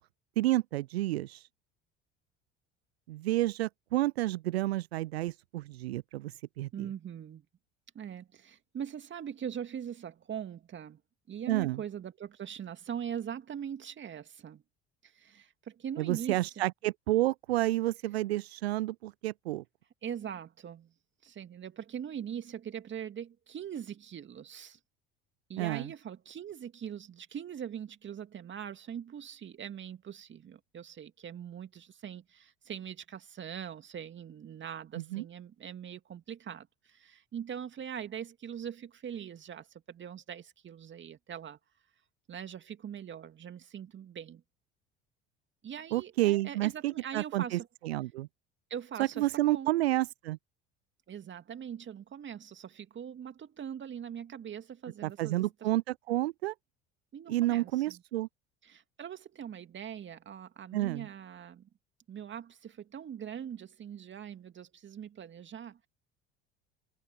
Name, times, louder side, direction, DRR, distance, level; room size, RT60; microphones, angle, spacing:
voice 1, 0.4-1.4 3.1-6.9 11.5-11.8 16.0-19.6 25.6-25.9 35.0-35.2 45.9-48.3 49.0-50.4 55.0-56.5 57.3-58.3 60.7-61.1, right 17 dB, 75° right, 0.5 m, -30 dB
voice 2, 6.7-7.4 7.9-11.0 11.3-14.6 15.0-16.7 20.0-20.9 21.2-24.8 25.5-41.6 42.3-44.4 45.6-47.7 48.7-49.8 51.1-55.7 57.1-58.0 58.6-61.7 62.1-65.9, right 8 dB, 35° right, 2.3 m, -42 dB
figure-of-eight pair, 65°, 32 cm